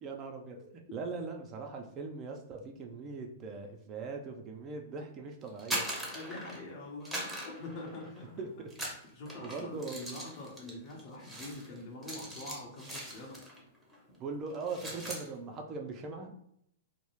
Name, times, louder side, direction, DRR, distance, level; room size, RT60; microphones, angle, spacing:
voice 1, 0.0-5.9 8.4-8.7 9.4-10.1 10.7-10.8 14.2-16.4, right 4 dB, 30° right, 3 dB, 0.3 m, -40 dB
sound 1, 5.5-6.7 7.0-8.3 8.7-13.6 13.9-14.1 14.5-15.3, right 1 dB, 5° right, 0.7 m, -40 dB
voice 2, 6.1-8.4 9.1-13.4, left 2 dB, 45° left, -1 dB, 0.8 m, -45 dB
2.2 x 2.0 x 3.0 m, 0.71 s
hypercardioid pair, 125°, 0 cm